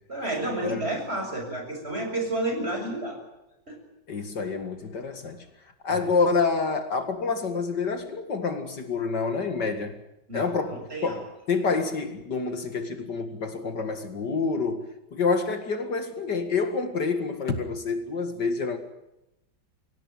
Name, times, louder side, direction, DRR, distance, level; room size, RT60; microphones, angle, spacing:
voice 1, 0.1-3.2 3.7-3.8 5.9-6.1 10.3-11.2, right 2 dB, 30° right, 3 dB, 7.3 m, -31 dB
voice 2, 4.1-5.5 5.8-9.9 10.3-14.9 15.1-18.8, left 4 dB, 60° left, 7 dB, 2.6 m, -27 dB
25.5 x 17.5 x 9.2 m, 0.91 s
omnidirectional pair, 2.1 m